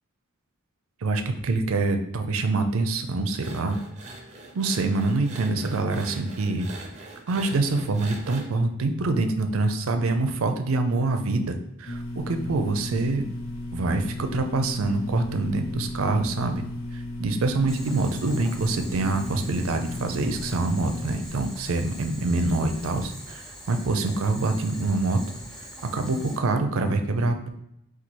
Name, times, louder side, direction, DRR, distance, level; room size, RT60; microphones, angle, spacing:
voice 1, 1.0-3.8 4.5-6.7 7.3-13.2 13.7-16.6 17.2-25.2 25.9-27.5, right 3 dB, 80° right, 7 dB, 0.5 m, -25 dB
sound 1, 3.3-8.4, right 2 dB, 35° right, 0.6 m, -43 dB
sound 2, 11.9-23.1, left 1 dB, 75° left, 0.7 m, -36 dB
Boiling, 17.7-26.4, equal, 5° left, 0.7 m, -43 dB
4.0 x 2.4 x 4.5 m, 0.78 s
head